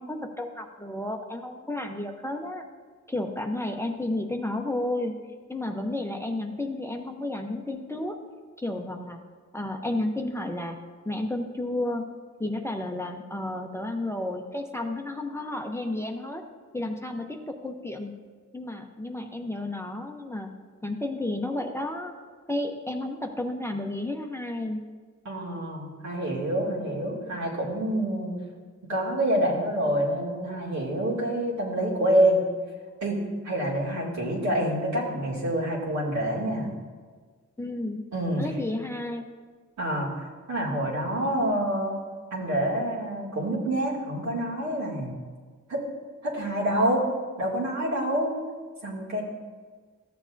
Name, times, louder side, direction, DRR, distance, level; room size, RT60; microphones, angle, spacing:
voice 1, 0.0-2.6 3.1-5.1 5.5-8.2 8.6-9.2 9.5-10.8 11.0-12.0 12.4-16.4 16.7-18.1 18.5-20.5 20.8-22.1 22.5-24.8 37.6-38.0 38.4-39.2, left 1 dB, 10° left, 3 dB, 0.7 m, -32 dB
voice 2, 25.2-28.4 28.8-32.5 33.0-36.7 38.1-38.4 39.8-40.1 40.5-42.0 42.3-45.1 45.7-45.8 46.2-47.0 47.4-48.3 48.8-49.2, right 1 dB, 70° right, -4 dB, 2.4 m, -27 dB
13.5 x 7.1 x 2.6 m, 1.5 s
cardioid pair, 75°, 29 cm